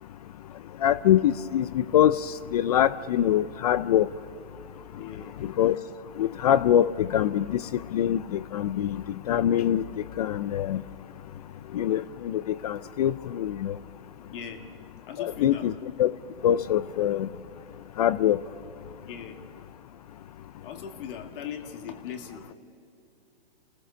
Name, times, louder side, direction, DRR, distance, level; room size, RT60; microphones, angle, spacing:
voice 1, 0.8-4.1 5.4-5.8 6.2-9.8 10.2-10.8 11.7-13.8 15.2-16.1 16.4-17.3 18.0-18.4, left 11 dB, 40° left, 17 dB, 0.4 m, -24 dB
voice 2, 4.9-5.4 14.3-14.6 15.1-15.7 19.1-19.4 20.6-22.5, left 8 dB, 55° left, 5 dB, 2.3 m, -39 dB
29.0 x 15.0 x 6.8 m, 2.7 s
hypercardioid pair, 140°, 33 cm